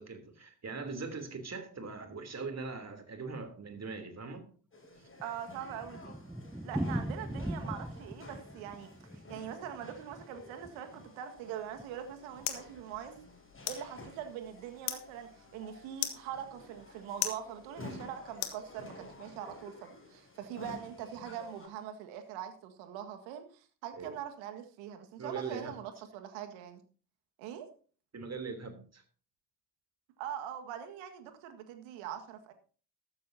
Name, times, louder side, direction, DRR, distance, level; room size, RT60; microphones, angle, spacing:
voice 1, 0.0-4.5 23.9-24.2 25.2-25.7 28.1-29.0, right 4 dB, 30° right, 7 dB, 3.3 m, -41 dB
sound 1, 4.7-21.7, left 2 dB, 25° left, 7.8 m, -52 dB
Thunder, 4.8-11.1 11.4-11.5 11.8-11.9 12.1-12.2 12.8-13.1, right 1 dB, 5° right, 0.7 m, -40 dB
voice 2, 5.2-6.2 6.6-13.2 13.6-26.8 27.4-27.7 30.2-32.5, right 9 dB, 70° right, 7 dB, 1.9 m, -43 dB
sound 2, 11.6-19.2, left 12 dB, 65° left, 1.8 m, -42 dB
13.5 x 13.5 x 2.8 m, 0.40 s
figure-of-eight pair, 50°, 49 cm